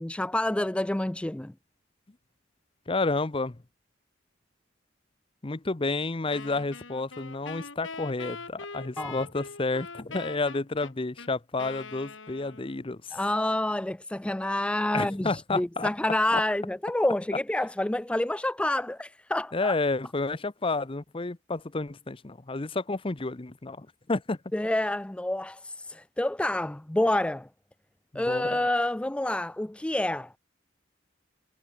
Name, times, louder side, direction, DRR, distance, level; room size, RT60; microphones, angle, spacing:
voice 1, 0.0-1.5 9.0-9.2 13.1-19.7 24.5-27.5 28.1-30.3, left 1 dB, 5° left, 0.3 m, -28 dB
voice 2, 2.9-3.6 5.4-13.2 14.9-15.9 16.3-16.4 19.5-24.4 28.1-28.7, left 3 dB, 30° left, 0.8 m, -30 dB
Wind instrument woodwind instrument, 6.3-12.9, left 4 dB, 80° left, 3.3 m, -42 dB
head